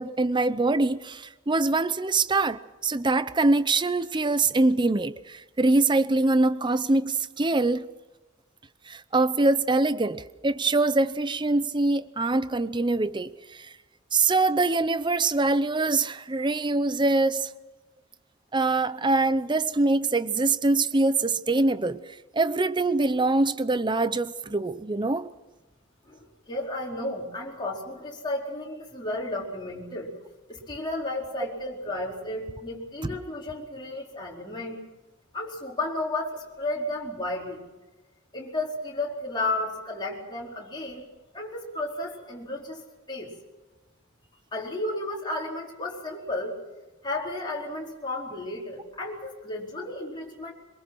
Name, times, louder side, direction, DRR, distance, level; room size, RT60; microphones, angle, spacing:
voice 1, 0.0-7.8 8.9-13.7 14.1-17.5 18.5-22.0 22.3-25.3, right 2 dB, 25° right, 0.7 m, -24 dB
voice 2, 26.0-30.1 30.5-34.8 35.3-37.7 38.3-41.0 41.3-43.3 44.5-46.6 47.0-50.5, left 2 dB, 25° left, 4.7 m, -33 dB
23.5 x 22.5 x 6.2 m
head